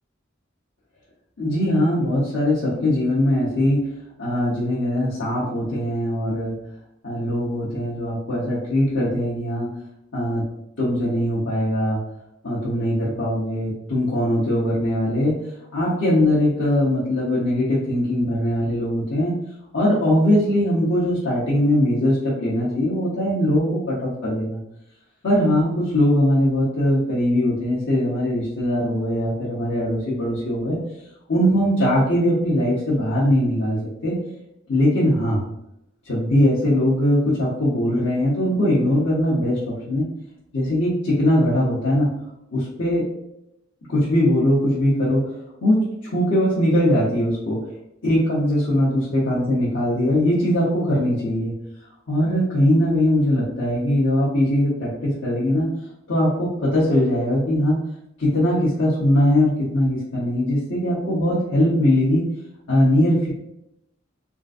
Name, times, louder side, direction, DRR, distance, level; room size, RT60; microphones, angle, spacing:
voice 1, 1.4-3.8 4.2-6.5 7.0-9.7 10.1-10.4 10.8-12.0 12.4-15.3 15.7-19.3 19.7-24.6 25.2-30.8 31.3-34.1 34.7-35.4 36.0-40.0 40.5-42.1 42.5-43.0 43.9-45.2 45.6-47.6 48.0-51.5 52.1-55.7 56.1-57.8 58.2-62.2 62.7-63.3, left 1 dB, 85° left, -8 dB, 1.0 m, -21 dB
3.6 x 2.6 x 2.5 m, 0.82 s
head